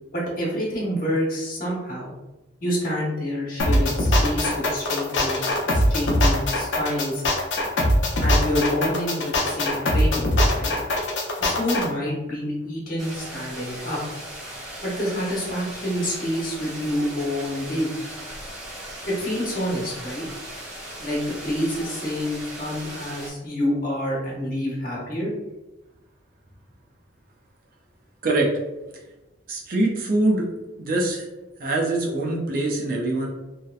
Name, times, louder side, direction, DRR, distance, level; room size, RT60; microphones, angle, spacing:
voice 1, 0.1-2.1 2.6-7.2 8.2-10.3 10.5-10.7 11.4-14.0 14.8-17.9 19.1-20.2 21.0-25.3, equal, 45° left, -5 dB, 0.9 m, -27 dB
sound 1, 3.6-11.9, left 1 dB, 80° left, 0.5 m, -21 dB
sound 2, 13.0-23.3, right 1 dB, ahead, 0.6 m, -38 dB
voice 2, 29.5-30.5 30.8-31.3 31.6-33.3, right 2 dB, 50° right, -1 dB, 0.5 m, -23 dB
2.7 x 2.0 x 2.3 m, 1.0 s
head